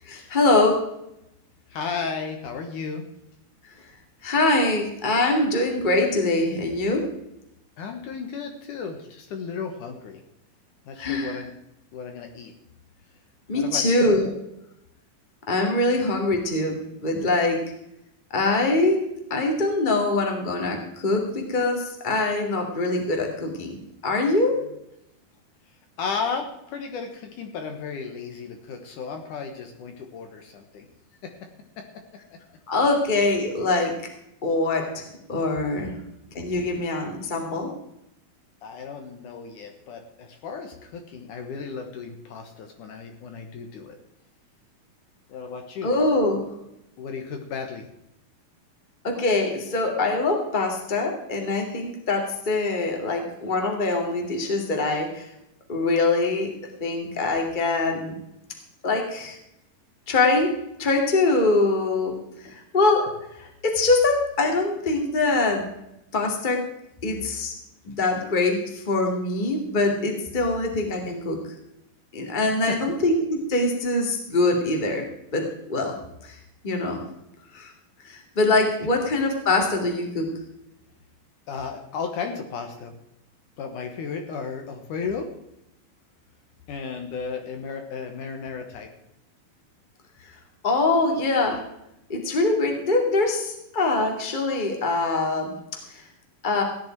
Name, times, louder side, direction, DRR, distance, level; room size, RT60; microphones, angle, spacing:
voice 1, 0.0-0.8 4.2-7.0 11.0-11.4 13.5-14.3 15.5-17.6 18.3-19.0 19.3-24.6 32.7-33.9 34.4-36.0 36.3-37.7 45.8-46.4 49.0-55.3 55.7-56.5 56.8-58.2 58.8-59.4 60.1-60.5 60.8-65.7 66.1-66.6 67.0-67.5 67.8-71.5 72.1-75.1 75.3-76.0 76.2-76.4 76.6-77.0 77.5-77.7 78.0-80.3 90.2-90.3 90.6-91.6 92.1-95.5 95.9-96.0 96.4-96.6, left 2 dB, 15° left, 2 dB, 1.9 m, -23 dB
voice 2, 1.7-3.1 7.8-10.2 10.9-11.5 11.9-12.5 13.5-14.1 26.0-30.9 31.2-31.3 32.5-32.6 38.6-44.0 45.3-45.9 46.3-46.5 47.0-47.9 62.4-62.6 72.7-72.8 81.5-83.0 83.6-85.3 86.7-88.9, left 5 dB, 65° left, 4 dB, 2.6 m, -34 dB
16.5 x 10.5 x 4.6 m, 0.82 s
omnidirectional pair, 4.2 m